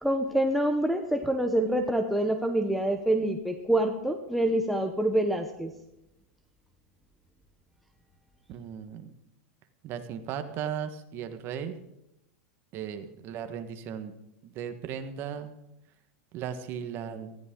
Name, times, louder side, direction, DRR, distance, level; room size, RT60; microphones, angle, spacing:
voice 1, 0.0-5.7, right 1 dB, ahead, 3 dB, 0.9 m, -26 dB
voice 2, 8.5-9.1 9.8-11.7 12.7-14.1 14.4-15.5 16.3-17.4, right 8 dB, 30° right, 8 dB, 1.5 m, -36 dB
19.0 x 14.0 x 3.8 m, 0.88 s
supercardioid pair, 160°, 7 cm